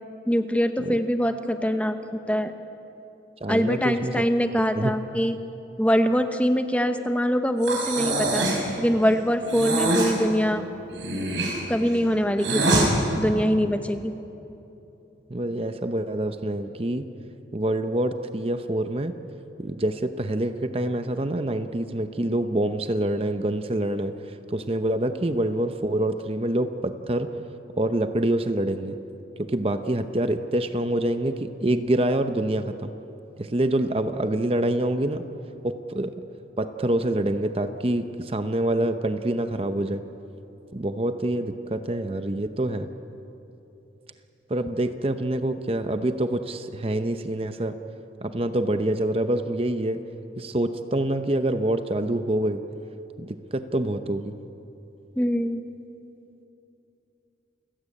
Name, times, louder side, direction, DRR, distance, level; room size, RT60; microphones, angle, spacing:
voice 1, 0.3-2.0 2.3-2.5 3.5-5.4 5.8-8.5 8.8-10.6 11.7-14.1 55.2-55.6, equal, 5° left, 7 dB, 0.9 m, -23 dB
voice 2, 3.4-4.2 4.8-4.9 15.3-17.0 17.5-19.1 19.6-27.4 27.7-29.0 29.4-32.9 33.4-35.3 35.6-36.2 36.6-40.0 40.7-42.9 44.5-47.8 48.2-50.0 50.4-52.6 53.2-54.4, right 1 dB, 30° right, 9 dB, 0.8 m, -26 dB
Breathing, 7.6-8.7 9.5-10.1 10.9-12.9, right 2 dB, 80° right, 6.1 m, -24 dB
29.0 x 16.5 x 8.6 m, 3.0 s
head